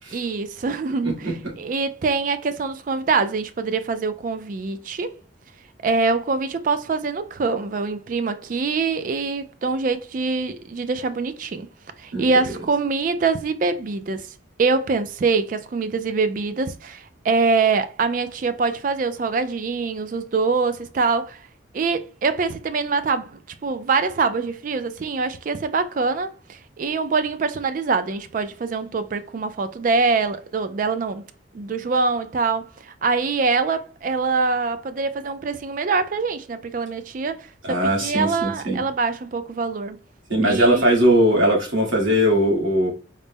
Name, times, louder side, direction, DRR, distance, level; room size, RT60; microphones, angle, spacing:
voice 1, 0.1-1.1 1.6-5.2 5.8-11.7 12.0-14.3 14.6-21.4 21.7-31.2 31.5-40.0 40.4-40.9, right 4 dB, 40° right, 0.3 m, -24 dB
voice 2, 1.0-1.3 12.1-12.6 37.6-38.8 40.3-42.9, right 1 dB, 90° right, 1.6 m, -20 dB
3.9 x 2.1 x 3.4 m
head